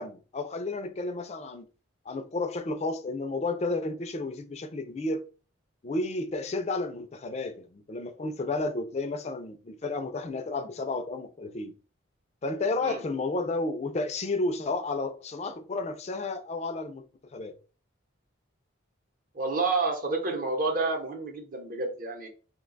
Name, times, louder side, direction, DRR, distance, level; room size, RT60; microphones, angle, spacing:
voice 1, 0.0-1.7 2.1-5.2 5.8-11.7 12.4-17.0 17.3-17.5, left 2 dB, 35° left, 0.4 m, -32 dB
voice 2, 19.3-22.3, right 3 dB, 45° right, 0.7 m, -29 dB
2.7 x 2.2 x 3.9 m
head